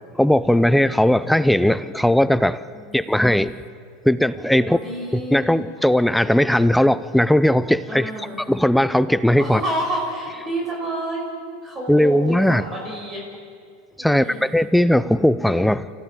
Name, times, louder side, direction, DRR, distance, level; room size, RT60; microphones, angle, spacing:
voice 1, 0.2-2.6 2.9-3.6 4.0-4.8 5.1-8.1 8.5-9.6 11.9-12.6 14.0-15.9, left 1 dB, ahead, 15 dB, 0.6 m, -18 dB
voice 2, 2.7-3.3 4.5-5.6 7.9-8.4 9.4-11.3 11.6-13.2 14.0-14.5, right 1 dB, 25° right, -1 dB, 5.5 m, -29 dB
25.5 x 15.5 x 8.6 m, 2.2 s
supercardioid pair, 110°, 0 cm